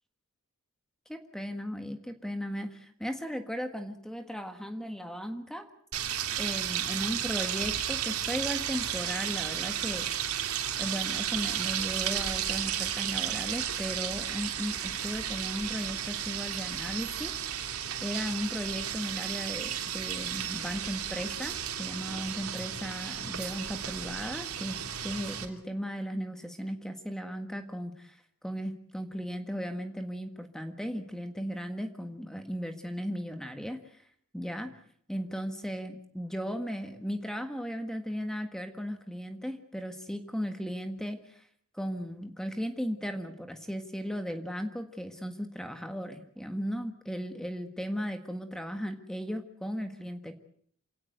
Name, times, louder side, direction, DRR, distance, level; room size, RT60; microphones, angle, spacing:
voice 1, 1.1-5.7 6.4-10.1 10.8-17.3 18.0-24.8 25.0-34.0 34.3-34.8 35.1-41.5 41.7-50.3, equal, ahead, 6 dB, 1.6 m, -36 dB
sound 1, 5.9-25.5, right 9 dB, 75° right, 3.2 m, -33 dB
28.0 x 17.5 x 8.0 m, 0.64 s
head